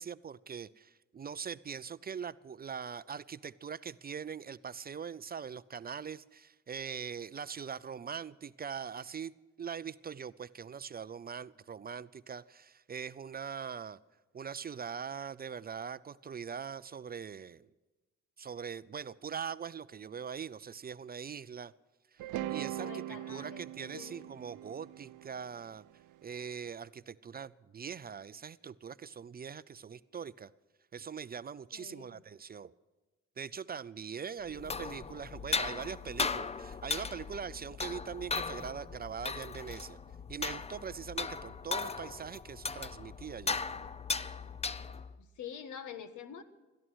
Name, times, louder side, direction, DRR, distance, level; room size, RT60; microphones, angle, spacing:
voice 1, 0.0-9.3 9.6-14.0 14.3-17.7 18.4-21.7 22.1-25.8 26.2-30.5 30.9-32.7 33.4-40.0 40.3-43.6, right 7 dB, 30° right, 16 dB, 0.5 m, -42 dB
sound 1, 22.2-26.4, right 14 dB, 85° right, 0.6 m, -41 dB
voice 2, 22.8-23.6 23.9-24.3 31.7-32.2 34.4-34.7 45.2-46.4, left 8 dB, 75° left, 11 dB, 1.6 m, -46 dB
sound 2, 34.5-45.2, left 4 dB, 20° left, 0.6 m, -37 dB
17.5 x 13.0 x 6.2 m, 1.2 s
cardioid pair, 90°, 30 cm